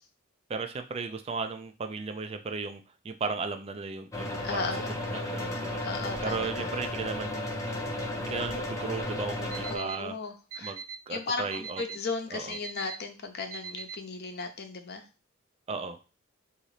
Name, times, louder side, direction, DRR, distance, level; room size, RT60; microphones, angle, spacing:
voice 1, 0.5-4.7 5.1-7.5 8.2-10.1 10.6-11.8 12.3-12.6 15.7-16.0, right 4 dB, 30° right, 7 dB, 0.4 m, -36 dB
sound 1, 4.1-9.8, left 1 dB, 15° left, 0.7 m, -34 dB
voice 2, 4.4-4.9 5.8-6.7 9.7-10.7 11.1-15.0, left 4 dB, 50° left, 6 dB, 0.7 m, -36 dB
Alarm, 9.5-10.0 10.5-11.0 11.5-12.0 12.5-13.0 13.5-14.0, right 6 dB, 90° right, 1.2 m, -39 dB
3.9 x 2.7 x 4.8 m, 0.32 s
head